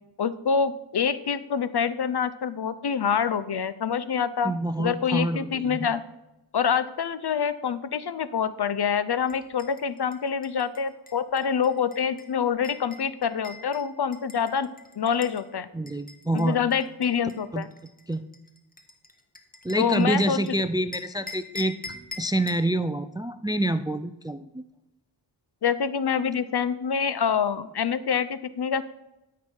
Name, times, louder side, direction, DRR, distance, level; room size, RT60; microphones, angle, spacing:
voice 1, 0.2-6.0 6.5-14.7 15.0-15.7 16.3-17.7 19.8-20.4 25.6-28.8, left 7 dB, 55° left, 15 dB, 0.7 m, -26 dB
voice 2, 4.4-5.8 15.7-16.6 17.5-17.7 18.1-18.2 19.6-21.7 22.2-24.6, right 1 dB, 10° right, 11 dB, 0.4 m, -27 dB
sound 1, 9.3-15.4 15.9-20.5 20.9-22.7, left 3 dB, 15° left, 1.2 m, -45 dB
13.0 x 6.1 x 4.5 m, 0.95 s
cardioid pair, 55°, 49 cm